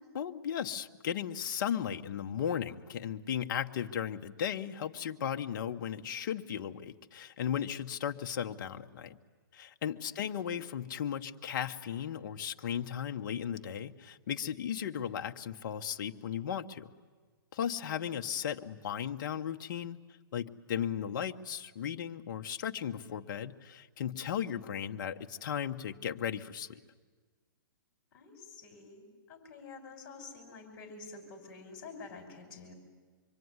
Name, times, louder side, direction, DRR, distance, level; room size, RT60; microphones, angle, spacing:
voice 1, 0.1-9.2 9.5-16.9 17.5-20.0 20.3-26.8, left 9 dB, 55° left, 6 dB, 1.2 m, -36 dB
voice 2, 10.0-10.5 17.8-18.2 28.1-32.8, left 4 dB, 40° left, 5 dB, 6.3 m, -49 dB
25.5 x 23.0 x 9.7 m, 1.4 s
hypercardioid pair, 150°, 12 cm